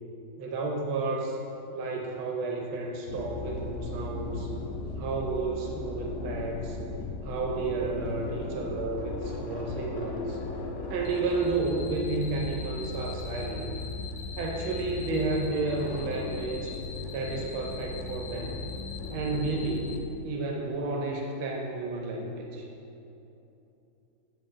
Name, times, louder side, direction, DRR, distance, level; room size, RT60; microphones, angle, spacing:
voice 1, 0.4-1.4 1.7-4.5 5.0-6.8 7.2-10.4 10.9-13.7 14.4-16.8 17.1-18.7 19.1-22.6, right 3 dB, 90° right, 0 dB, 1.6 m, -31 dB
sound 1, 3.1-20.0, left 3 dB, 85° left, 0.6 m, -37 dB
8.7 x 5.9 x 3.7 m, 2.9 s
omnidirectional pair, 2.2 m